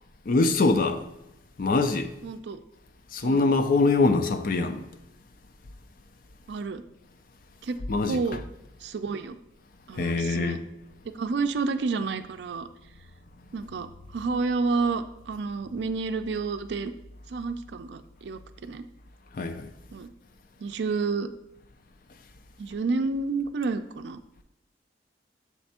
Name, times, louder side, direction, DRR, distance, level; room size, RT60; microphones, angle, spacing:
voice 1, 0.3-1.1 1.6-2.1 3.1-4.9 7.9-8.2 9.9-10.6 19.3-19.7, left 3 dB, 55° left, 0.5 m, -23 dB
voice 2, 2.2-2.6 3.2-3.5 6.5-6.8 7.6-7.8 8.1-8.4 8.8-9.4 9.9-10.6 11.1-12.7 13.5-16.9 17.3-18.8 19.9-20.1 20.6-21.3 22.6-24.2, right 4 dB, 75° right, 0.4 m, -30 dB
7.3 x 3.4 x 4.2 m
head